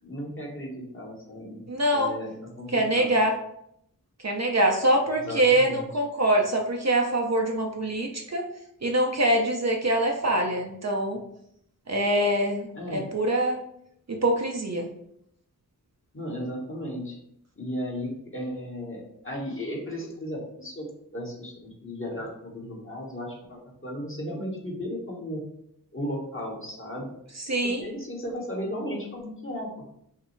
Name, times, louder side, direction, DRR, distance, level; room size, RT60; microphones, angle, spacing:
voice 1, 0.0-1.6 1.9-3.2 5.2-5.9 12.7-13.1 16.1-17.2 17.6-25.4 25.9-27.1 27.6-29.7, equal, 35° left, -2 dB, 1.3 m, -35 dB
voice 2, 1.7-2.1 2.7-3.4 4.2-8.4 8.8-11.2 11.9-13.6 14.1-14.9 27.5-27.9, right 1 dB, 45° right, 3 dB, 0.6 m, -24 dB
5.7 x 2.0 x 3.2 m, 0.74 s
wide cardioid pair, 40°, 37 cm